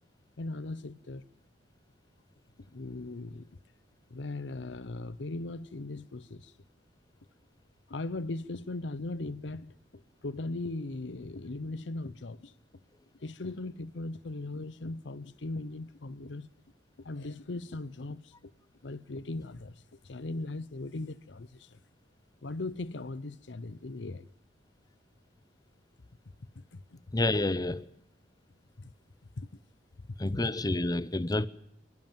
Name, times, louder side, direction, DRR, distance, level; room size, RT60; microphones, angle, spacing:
voice 1, 0.4-1.2 2.7-3.6 4.1-6.5 7.9-9.8 10.2-12.5 13.2-16.5 17.0-18.5 18.8-21.8 22.4-24.2 26.6-27.1 28.8-28.9 29.4-29.5 30.3-30.4, left 2 dB, 70° left, 0.8 m, -39 dB
voice 2, 27.1-27.9 30.2-31.5, left 2 dB, 20° left, 0.8 m, -28 dB
25.5 x 14.5 x 9.2 m
head